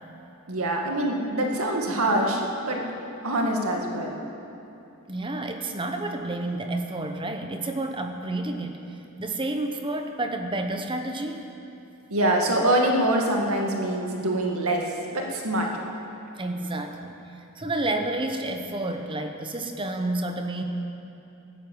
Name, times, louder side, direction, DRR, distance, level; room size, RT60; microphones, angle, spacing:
voice 1, 0.5-2.8 3.2-4.2 12.1-15.7, right 1 dB, 80° right, 1 dB, 2.1 m, -24 dB
voice 2, 5.1-11.4 16.4-20.6, right 2 dB, 25° right, 5 dB, 0.9 m, -30 dB
14.0 x 11.5 x 8.0 m, 2.8 s
head